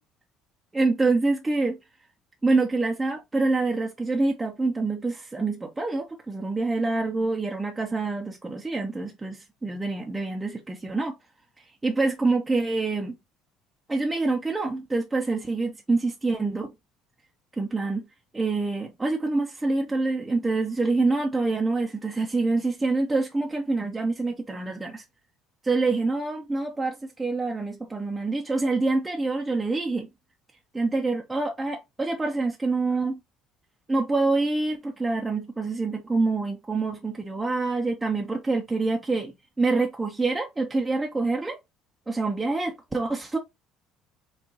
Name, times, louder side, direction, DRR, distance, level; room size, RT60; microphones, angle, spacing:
voice 1, 0.7-1.8 2.4-11.1 11.8-13.2 13.9-16.7 17.6-18.1 18.3-25.0 25.6-30.1 30.7-33.2 33.9-41.6 42.1-43.4, right 3 dB, 15° right, 0.7 m, -26 dB
4.4 x 2.5 x 2.9 m
hypercardioid pair, 75°, 0 cm